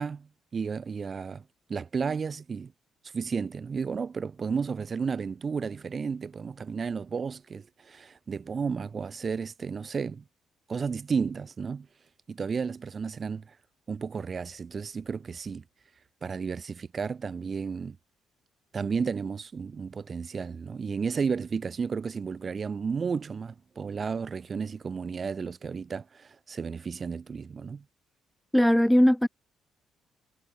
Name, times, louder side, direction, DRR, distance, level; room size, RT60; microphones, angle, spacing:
voice 1, 0.0-1.4 1.7-2.7 3.1-10.2 10.7-11.9 12.3-13.6 13.9-15.6 16.2-18.0 18.7-27.8, right 5 dB, 40° right, 6.1 m, -33 dB
voice 2, 28.5-29.3, equal, 5° left, 1.5 m, -19 dB
hypercardioid pair, 45°, 0 cm